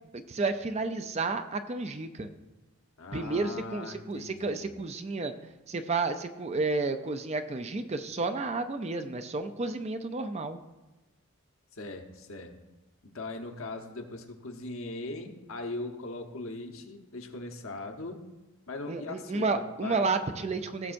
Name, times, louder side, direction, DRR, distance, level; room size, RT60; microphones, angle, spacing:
voice 1, 0.3-2.3 3.1-5.3 5.7-10.6 18.9-20.9, right 3 dB, 30° right, 8 dB, 0.4 m, -31 dB
voice 2, 3.0-4.7 11.7-12.5 13.0-18.3 18.7-20.1, left 2 dB, 70° left, 4 dB, 1.1 m, -40 dB
17.0 x 7.2 x 2.6 m, 1.1 s
head